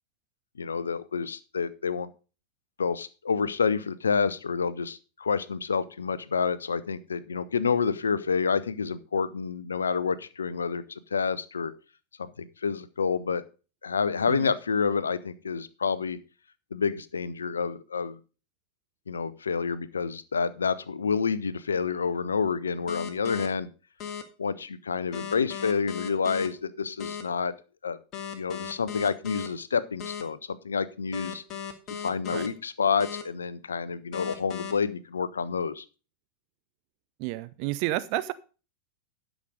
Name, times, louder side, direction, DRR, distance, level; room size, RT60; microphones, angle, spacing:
voice 1, 0.6-2.1 2.8-11.7 12.2-13.4 13.8-16.2 16.7-18.2 19.1-23.7 24.4-27.5 27.8-28.0 28.3-31.4 31.9-35.8, left 5 dB, 70° left, 15 dB, 0.7 m, -28 dB
sound 1, 22.9-23.5 24.0-24.2 25.1-26.5 27.0-27.2 28.1-29.5 30.0-30.2 31.1-32.5 33.0-33.2 34.1-34.7, left 8 dB, 35° left, 1.7 m, -36 dB
voice 2, 37.2-38.3, right 17 dB, 45° right, 16 dB, 0.5 m, -30 dB
11.5 x 6.2 x 5.1 m, 0.34 s
figure-of-eight pair, 90°, 0 cm